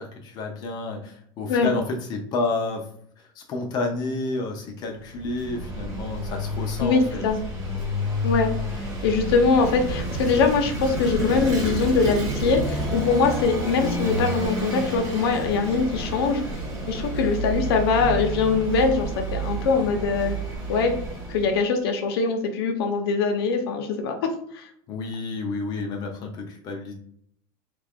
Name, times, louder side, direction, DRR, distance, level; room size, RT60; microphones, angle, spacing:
voice 1, 0.0-2.9 3.2-7.3 24.9-26.9, left 3 dB, 30° left, 2 dB, 0.6 m, -30 dB
Vehicle / Engine, 5.0-21.6, right 1 dB, 25° right, 1.2 m, -30 dB
voice 2, 6.8-7.4 8.2-8.5 8.8-16.4 16.9-20.4 20.7-20.9 21.3-24.1 24.5-24.7, left 4 dB, 85° left, 5 dB, 0.8 m, -22 dB
3.3 x 2.4 x 3.5 m, 0.67 s
supercardioid pair, 165°, 13 cm